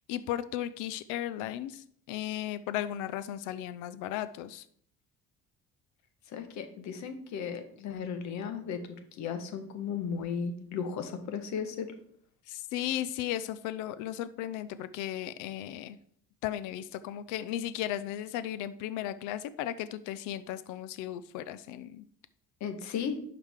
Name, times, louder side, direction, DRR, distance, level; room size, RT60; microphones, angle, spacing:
voice 1, 0.0-4.7 12.5-16.0 16.4-22.0, left 12 dB, 90° left, 14 dB, 0.5 m, -35 dB
voice 2, 6.3-8.8 9.2-11.9 22.6-23.2, left 6 dB, 70° left, 8 dB, 1.3 m, -35 dB
11.0 x 4.9 x 3.6 m, 0.62 s
cardioid pair, 120°, 30 cm